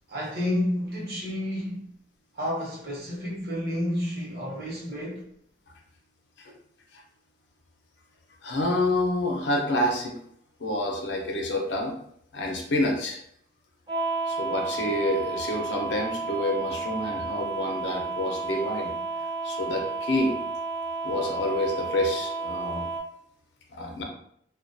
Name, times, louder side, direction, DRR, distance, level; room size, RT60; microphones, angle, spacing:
voice 1, 0.1-1.8 2.3-5.2, left 1 dB, 60° right, 0.8 m, -30 dB
voice 2, 8.4-10.1 10.6-11.9 12.3-13.2 14.3-18.9 19.4-20.4 21.0-22.9 23.7-24.0, left 1 dB, 85° left, 0.5 m, -28 dB
sound 1, 13.9-23.0, right 3 dB, 25° right, 0.4 m, -32 dB
2.2 x 2.2 x 2.5 m
head